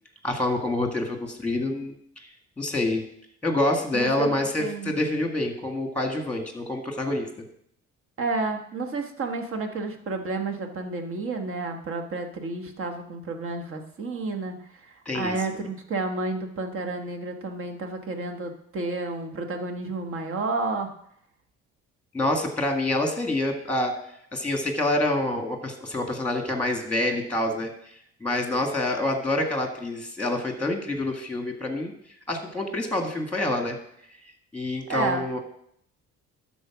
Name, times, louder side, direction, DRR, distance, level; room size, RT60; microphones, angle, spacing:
voice 1, 0.2-2.3 2.6-3.0 3.4-7.3 15.0-15.3 22.1-23.9 24.3-27.7 28.2-31.9 32.3-33.8 34.5-35.4, left 1 dB, 5° left, 3 dB, 1.7 m, -27 dB
voice 2, 3.9-4.3 4.6-5.0 8.2-20.9 34.9-35.3, right 3 dB, 45° right, 5 dB, 1.4 m, -31 dB
12.0 x 4.3 x 5.9 m, 0.70 s
cardioid pair, 125°, 29 cm